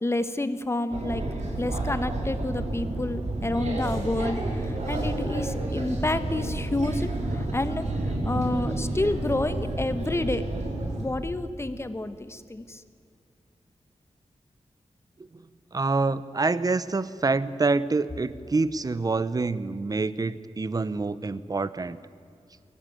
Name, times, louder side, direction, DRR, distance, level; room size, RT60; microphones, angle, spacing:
voice 1, 0.0-1.2 1.6-7.9 8.2-10.4 11.0-12.8, left 2 dB, 20° left, 11 dB, 1.1 m, -29 dB
sound 1, 0.9-11.0, right 2 dB, 75° right, 4.7 m, -30 dB
voice 2, 15.7-22.0, right 3 dB, 30° right, 16 dB, 0.8 m, -26 dB
22.5 x 18.0 x 9.3 m, 2.4 s
wide cardioid pair, 120°, 12 cm